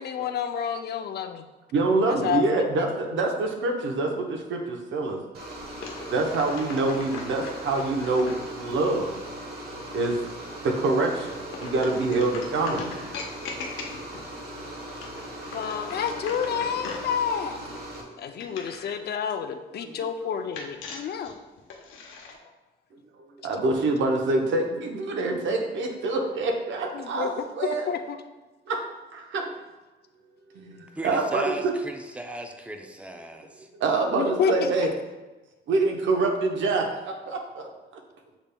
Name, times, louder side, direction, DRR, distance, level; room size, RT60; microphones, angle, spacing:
voice 1, 0.0-1.4 2.2-2.7 3.1-3.2 15.5-17.6 18.2-21.4 26.9-27.3 27.9-28.2 34.1-34.5, left 7 dB, 55° left, 7 dB, 0.4 m, -29 dB
voice 2, 1.7-5.2 6.0-9.2 9.9-10.2 10.6-12.9 16.3-16.7 18.0-18.1 19.8-20.0 23.2-27.9 28.7-28.8 29.1-29.5 30.5-31.7 33.7-34.9 35.7-37.7, right 3 dB, 70° right, 2 dB, 0.8 m, -26 dB
sound 1, 5.3-18.0, right 1 dB, 50° right, 1.2 m, -39 dB
sound 2, 5.8-8.4 11.5-14.3 14.9-17.1 18.4-19.0 20.5-22.4, left 4 dB, 90° left, 0.7 m, -40 dB
voice 3, 31.0-33.7, right 1 dB, 5° right, 4 dB, 0.5 m, -37 dB
7.0 x 3.4 x 2.2 m, 1.2 s
cardioid pair, 90°, 20 cm